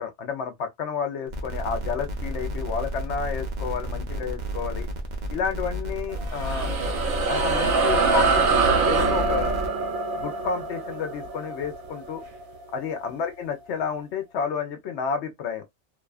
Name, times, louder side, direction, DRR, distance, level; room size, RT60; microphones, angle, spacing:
voice 1, 0.0-4.9 5.3-6.7 7.1-9.5 10.2-12.2 12.7-15.6, left 6 dB, 65° left, 0.8 m, -31 dB
sound 1, 1.3-9.7, equal, 50° right, 0.5 m, -32 dB
sound 2, 6.1-12.9, right 4 dB, 80° right, 1.2 m, -25 dB
2.7 x 2.2 x 2.3 m
omnidirectional pair, 1.4 m